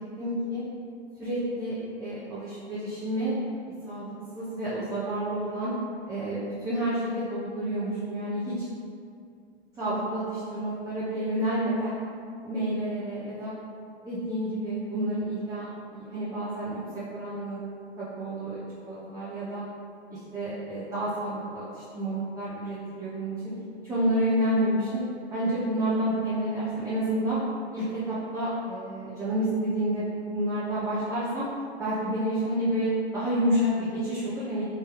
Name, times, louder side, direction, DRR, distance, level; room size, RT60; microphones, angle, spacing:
voice 1, 0.2-0.6 1.2-3.3 3.8-5.7 6.1-8.7 9.8-11.9 12.4-13.5 14.0-15.7 15.9-17.6 18.0-19.6 20.3-23.3 23.8-25.0 25.3-27.4 27.7-31.4 31.8-34.6, right 1 dB, 10° right, -10 dB, 0.7 m, -29 dB
3.3 x 3.1 x 3.0 m, 2.4 s
hypercardioid pair, 105°, 33 cm